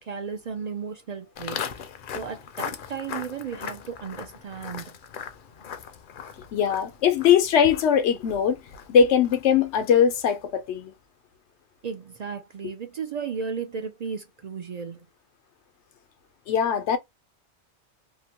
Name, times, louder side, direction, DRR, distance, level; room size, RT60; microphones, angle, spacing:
voice 1, 0.0-1.8 2.1-4.9 11.8-15.0, right 6 dB, 55° right, 0.4 m, -34 dB
Walk footsteps, 1.4-10.6, left 7 dB, 60° left, 0.6 m, -39 dB
voice 2, 6.5-8.6 8.9-10.9 16.5-17.0, left 7 dB, 90° left, 0.9 m, -21 dB
2.8 x 2.1 x 2.8 m
omnidirectional pair, 1.1 m